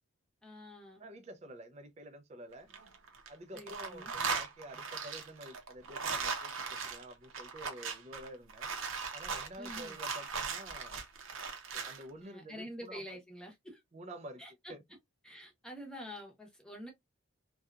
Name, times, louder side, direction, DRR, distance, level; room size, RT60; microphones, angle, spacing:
voice 1, 0.4-1.0 3.5-4.1 9.6-10.0 12.2-13.8 14.4-14.7 15.2-16.9, equal, 5° left, 0.8 m, -47 dB
voice 2, 1.0-2.7 3.3-8.7 9.1-11.0 11.7-13.2 13.9-14.4 14.7-14.8, right 1 dB, 30° right, 0.4 m, -49 dB
sound 1, 2.5-3.3 3.6-12.0, right 5 dB, 80° right, 0.7 m, -38 dB
2.7 x 2.3 x 2.3 m
head